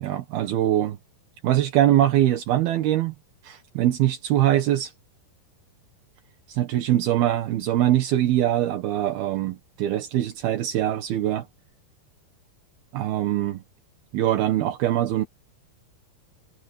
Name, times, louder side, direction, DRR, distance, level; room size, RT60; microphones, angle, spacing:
voice 1, 0.0-1.0 1.4-3.1 3.4-4.9 6.5-11.5 12.9-13.6 14.1-15.3, right 12 dB, 75° right, 3.3 m, -23 dB
omnidirectional pair, 4.5 m